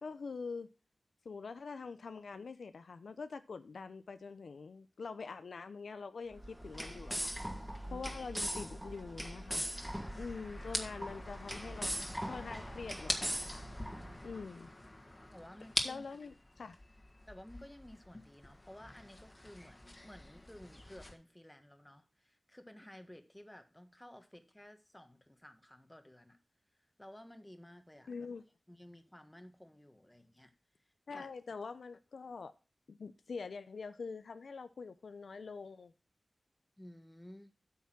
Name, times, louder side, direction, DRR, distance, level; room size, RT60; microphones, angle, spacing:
voice 1, 0.0-0.7 1.2-7.3 7.6-9.6 10.2-12.0 12.2-13.6 14.2-14.7 15.8-16.8 28.1-28.4 31.1-32.5 32.9-35.9, left 4 dB, 90° left, 0.6 m, -45 dB
sound 1, 6.3-14.5, equal, 5° right, 1.3 m, -41 dB
sound 2, 9.7-21.1, left 1 dB, 30° left, 1.8 m, -44 dB
voice 2, 15.3-16.1 17.3-26.4 27.0-28.1 28.7-30.5 31.1-31.3 36.8-37.5, left 1 dB, 15° left, 1.4 m, -54 dB
8.8 x 5.8 x 5.9 m
cardioid pair, 50°, 0 cm